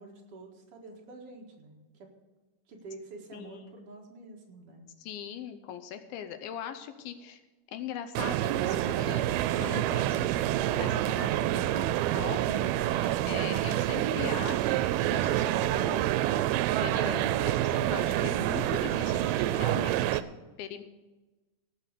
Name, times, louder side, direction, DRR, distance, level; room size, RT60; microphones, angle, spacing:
voice 1, 0.0-2.1 2.7-4.9, right 3 dB, 50° right, 0 dB, 2.2 m, -48 dB
voice 2, 3.3-3.7 5.0-7.4 7.7-9.3 9.6-10.4 10.7-16.1 16.8-20.2 20.6-20.8, left 9 dB, 80° left, 9 dB, 2.6 m, -41 dB
sound 1, 8.1-20.2, right 13 dB, 90° right, 2.5 m, -27 dB
17.5 x 5.9 x 6.6 m, 1.2 s
omnidirectional pair, 4.3 m